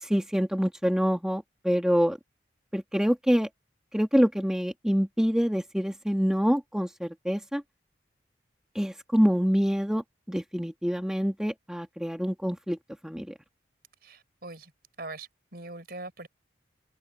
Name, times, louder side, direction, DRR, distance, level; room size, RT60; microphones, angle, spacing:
voice 1, 0.0-2.2 2.7-3.5 3.9-7.6 8.7-12.8 13.0-13.3, equal, 5° right, 1.4 m, -26 dB
voice 2, 14.0-14.7 15.0-16.3, right 2 dB, 55° right, 4.8 m, -42 dB
head